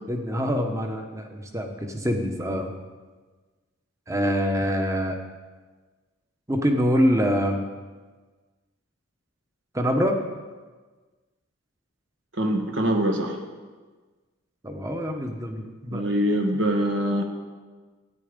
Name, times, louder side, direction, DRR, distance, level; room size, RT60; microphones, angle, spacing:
voice 1, 0.1-2.7 4.1-5.2 6.5-7.6 9.7-10.2 14.6-16.0, equal, 15° right, 4 dB, 1.2 m, -25 dB
voice 2, 12.4-13.4 15.9-17.2, equal, 65° right, 3 dB, 1.8 m, -23 dB
13.5 x 9.9 x 5.3 m, 1.4 s
head